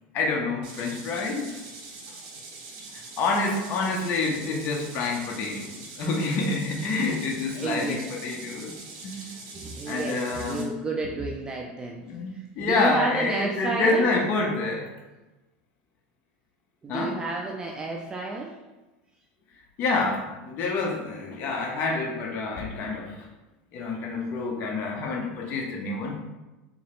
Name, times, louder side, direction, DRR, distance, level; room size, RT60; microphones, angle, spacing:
voice 1, 0.1-1.6 2.9-8.7 9.0-9.4 9.9-10.7 12.1-14.9 16.9-17.1 19.8-23.3 23.7-26.1, left 3 dB, 40° left, 0 dB, 0.6 m, -27 dB
sound 1, 0.6-10.6, right 3 dB, 65° right, 1.2 m, -43 dB
voice 2, 7.5-8.0 9.5-12.0 12.3-14.1 16.8-18.6, right 3 dB, 15° right, 0 dB, 0.3 m, -31 dB
3.9 x 2.9 x 3.0 m, 1.1 s
supercardioid pair, 140°, 5 cm